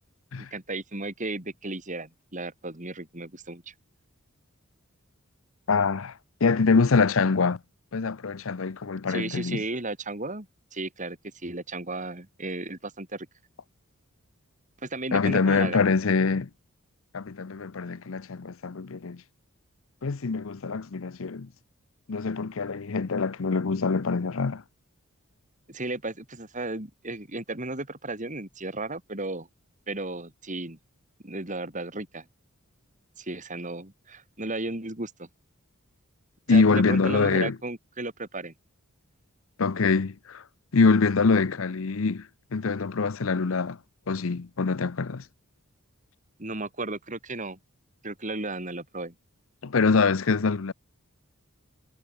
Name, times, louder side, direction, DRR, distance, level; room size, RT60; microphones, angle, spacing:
voice 1, 0.4-3.7 9.1-10.5 10.7-11.2 11.4-13.3 14.8-16.0 25.7-29.5 29.9-30.8 31.2-32.2 33.2-35.3 36.5-38.5 46.4-47.6 48.0-49.1, right 2 dB, 35° right, 4.1 m, -34 dB
voice 2, 5.7-6.1 6.4-7.6 7.9-9.6 15.1-16.5 17.1-19.2 20.0-21.5 22.1-24.6 36.5-37.6 39.6-40.4 40.7-42.3 42.5-43.8 44.1-45.2 49.6-50.7, left 4 dB, 65° left, 0.7 m, -24 dB
head